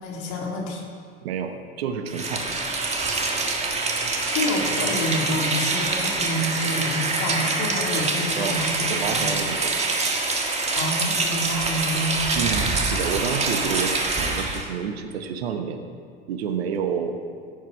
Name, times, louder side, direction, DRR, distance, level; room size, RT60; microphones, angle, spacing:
voice 1, 0.0-0.9 4.2-9.3 10.7-12.4, left 1 dB, 50° left, -2 dB, 3.0 m, -28 dB
voice 2, 1.2-2.5 8.4-8.6 8.9-9.7 12.4-15.8 16.3-17.2, right 7 dB, 70° right, 7 dB, 1.2 m, -29 dB
Rain, 2.1-14.7, right 3 dB, 20° right, 1.7 m, -25 dB
16.0 x 8.6 x 4.6 m, 2.1 s
hypercardioid pair, 85°, 32 cm